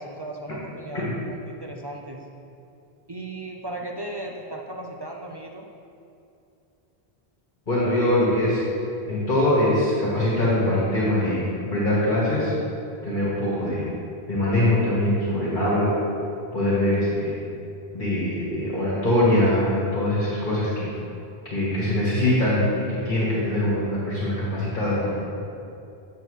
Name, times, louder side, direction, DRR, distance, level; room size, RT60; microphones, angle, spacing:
voice 1, 0.0-2.2 3.1-5.6, right 2 dB, 35° right, -1 dB, 0.4 m, -36 dB
voice 2, 7.7-8.6 9.1-12.5 13.0-13.8 14.3-15.9 16.5-17.3 17.9-20.9 21.5-22.6 22.9-25.2, left 1 dB, 50° left, -8 dB, 1.8 m, -23 dB
9.2 x 6.7 x 3.2 m, 2.6 s
omnidirectional pair, 1.0 m